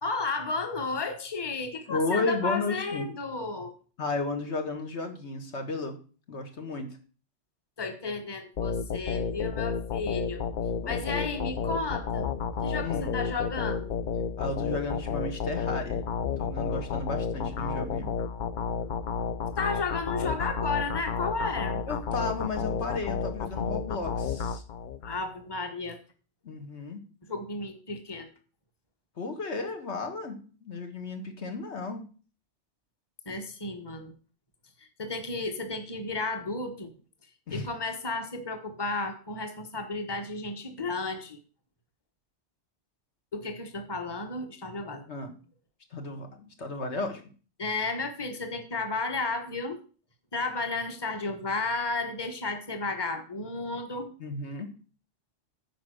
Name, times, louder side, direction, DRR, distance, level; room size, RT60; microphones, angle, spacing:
voice 1, 0.0-3.7 7.8-10.4 10.9-12.3 12.6-13.9 19.6-21.8 25.0-26.0 27.3-28.3 33.3-34.1 35.0-36.9 37.5-41.4 43.3-45.0 47.6-49.8 50.3-54.1, left 3 dB, 20° left, 5 dB, 1.2 m, -33 dB
voice 2, 1.9-3.1 4.0-6.0 6.3-7.0 10.8-11.8 12.8-13.1 14.4-16.0 16.4-18.1 21.9-24.6 26.4-27.0 29.2-32.1 37.5-37.7 45.1-45.3 45.9-47.2 54.2-54.7, left 3 dB, 75° left, 5 dB, 1.8 m, -33 dB
sound 1, 8.6-25.2, left 6 dB, 55° left, 0.6 m, -31 dB
10.0 x 4.9 x 6.3 m, 0.38 s
omnidirectional pair, 1.2 m